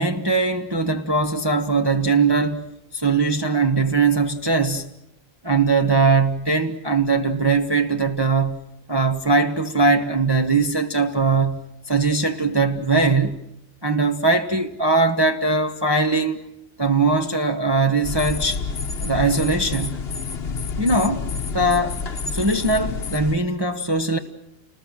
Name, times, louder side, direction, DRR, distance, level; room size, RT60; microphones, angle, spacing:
voice 1, 0.0-2.6 2.9-4.9 5.4-8.6 8.9-13.4 13.8-16.4 16.8-18.6 19.0-20.0 20.8-22.0 22.3-24.2, right 3 dB, 20° right, 1.1 m, -20 dB
sound 1, 18.0-23.4, left 4 dB, 50° left, 1.3 m, -29 dB
29.5 x 20.0 x 7.4 m
omnidirectional pair, 1.4 m